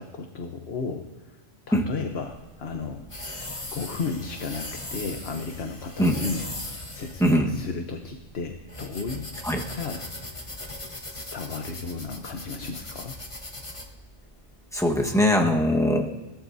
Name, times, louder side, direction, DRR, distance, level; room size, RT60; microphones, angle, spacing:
voice 1, 0.0-1.4 1.7-3.1 3.7-6.5 6.9-9.3 9.7-10.0 11.1-13.1, left 4 dB, 65° left, 4 dB, 1.2 m, -34 dB
sound 1, 2.1-15.1, left 1 dB, 30° left, 1.3 m, -39 dB
voice 2, 7.2-7.5 9.4-9.7 14.7-16.1, equal, 5° left, 0 dB, 1.3 m, -21 dB
21.5 x 18.0 x 2.7 m, 1.1 s
omnidirectional pair, 1.2 m